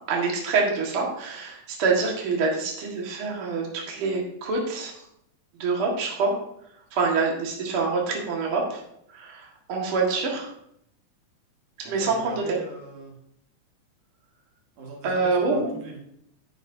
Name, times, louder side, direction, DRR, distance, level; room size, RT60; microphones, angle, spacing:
voice 1, 0.1-5.0 5.6-6.3 6.9-8.8 9.1-10.5 11.8-12.4 15.0-15.7, right 4 dB, 50° right, -1 dB, 2.4 m, -26 dB
voice 2, 11.8-13.2 14.8-16.0, right 2 dB, 75° right, -1 dB, 3.3 m, -40 dB
10.0 x 9.9 x 2.7 m, 0.74 s
omnidirectional pair, 3.6 m